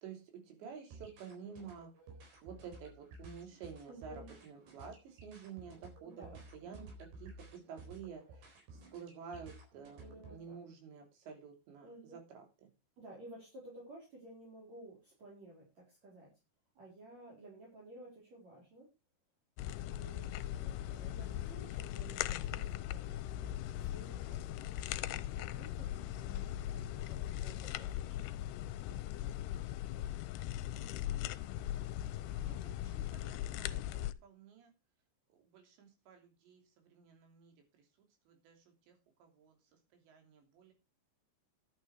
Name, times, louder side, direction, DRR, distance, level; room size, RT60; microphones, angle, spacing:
voice 1, 0.0-1.9 2.4-12.7 32.5-34.7 35.3-40.7, right 6 dB, 85° right, 4 dB, 5.3 m, -51 dB
sound 1, 0.8-10.4, right 2 dB, 60° right, 5.8 m, -54 dB
voice 2, 3.9-4.4 6.1-6.4 10.0-10.6 11.8-12.1 13.0-16.3 16.8-18.9 19.9-28.3 33.7-34.1, right 2 dB, 40° right, -2 dB, 5.4 m, -55 dB
sound 2, 19.6-34.1, left 13 dB, 80° left, 2.6 m, -39 dB
11.5 x 9.0 x 4.8 m, 0.28 s
omnidirectional pair, 5.0 m